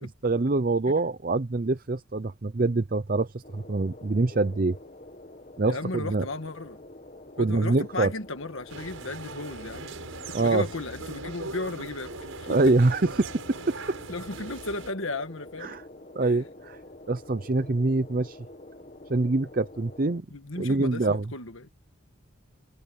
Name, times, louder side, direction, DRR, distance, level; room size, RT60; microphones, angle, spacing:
voice 1, 0.2-4.8 5.6-6.2 7.4-8.1 10.3-10.6 12.5-14.0 15.6-15.8 16.2-16.8 17.1-18.4 19.1-20.3 20.6-21.2, right 3 dB, 40° right, 0.6 m, -25 dB
sound 1, 3.4-20.2, left 1 dB, 35° left, 1.5 m, -47 dB
voice 2, 5.6-6.8 7.4-9.9 10.4-12.1 12.4-12.6 14.1-15.7 16.2-16.3 20.3-21.7, left 2 dB, 70° left, 1.7 m, -35 dB
sound 2, 8.7-14.9, right 3 dB, 75° right, 5.9 m, -40 dB
head